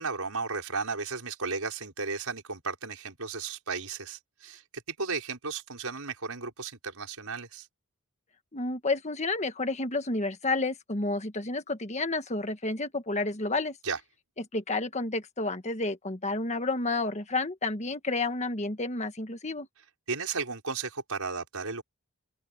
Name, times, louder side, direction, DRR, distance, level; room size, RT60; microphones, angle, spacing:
voice 1, 0.0-7.7 13.8-14.0 20.1-21.8, right 4 dB, 75° right, 5.6 m, -34 dB
voice 2, 8.5-13.8 14.4-19.7, left 2 dB, 30° left, 1.5 m, -30 dB
head